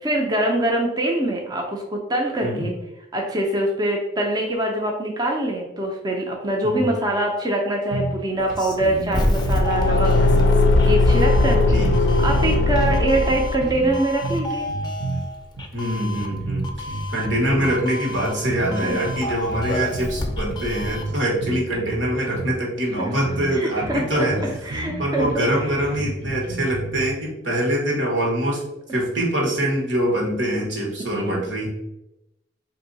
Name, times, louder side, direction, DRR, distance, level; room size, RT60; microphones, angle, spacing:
voice 1, 0.0-2.7 3.1-10.1 10.8-11.8 12.2-14.7 18.8-18.9 23.5-24.3 24.6-25.3 31.1-31.4, right 1 dB, 20° right, 0 dB, 0.5 m, -24 dB
sound 1, 7.9-8.2 8.5-8.6 8.8-10.4 10.9-13.0 13.3-15.2 15.6-15.8 16.2-17.8 18.1-18.8 19.0-20.1 20.5-22.6 22.9-23.0 23.2-23.5 23.8-27.1, right 2 dB, 65° right, 0.9 m, -30 dB
Doorbell, 8.4-21.2, left 1 dB, 25° left, 0.5 m, -30 dB
Car / Engine, 9.3-13.8, left 2 dB, 80° left, 0.4 m, -18 dB
voice 2, 11.5-11.9 15.7-16.7 17.1-24.6 25.0-28.6 28.9-31.7, right 1 dB, 85° right, -2 dB, 1.4 m, -24 dB
3.5 x 2.7 x 4.0 m, 0.89 s
head